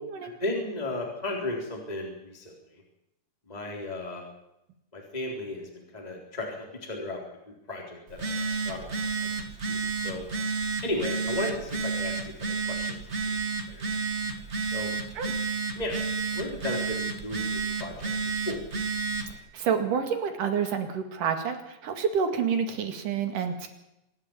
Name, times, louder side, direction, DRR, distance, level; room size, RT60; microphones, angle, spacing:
voice 1, 0.2-2.8 3.5-4.2 4.9-7.2 7.7-10.2 10.8-12.3 12.7-13.3 13.7-13.8 14.6-14.9 15.8-16.0 16.3-18.6, left 1 dB, 10° left, 0 dB, 3.8 m, -35 dB
Telephone, 8.1-19.4, right 4 dB, 30° right, 1.5 m, -31 dB
voice 2, 19.5-23.7, right 7 dB, 85° right, 6 dB, 3.8 m, -28 dB
25.5 x 11.0 x 9.8 m, 0.87 s
omnidirectional pair, 3.6 m